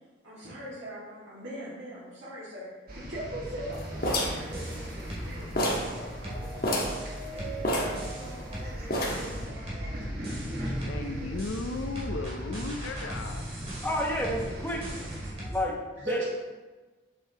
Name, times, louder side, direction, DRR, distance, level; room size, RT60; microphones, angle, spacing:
voice 1, 0.2-5.5 5.8-6.9 7.3-10.1 10.5-11.3 16.0-16.2, right 1 dB, 70° right, -9 dB, 2.1 m, -41 dB
sound 1, 2.9-15.3, equal, 50° right, 1.7 m, -38 dB
sound 2, 4.0-5.2 5.6-5.9 6.2-6.3 6.6-7.0 7.6-8.5 8.9-9.4, equal, 50° left, 1.4 m, -29 dB
sound 3, 4.0-4.2 4.5-5.3 5.7-8.8 9.1-9.9 10.2-11.0 11.4-15.7, right 1 dB, 30° right, 2.6 m, -40 dB
voice 2, 10.8-13.4, left 3 dB, 90° left, 5 dB, 0.5 m, -35 dB
voice 3, 13.8-15.0 15.5-16.2, equal, 10° left, -2 dB, 1.1 m, -30 dB
7.5 x 7.5 x 2.9 m, 1.3 s
head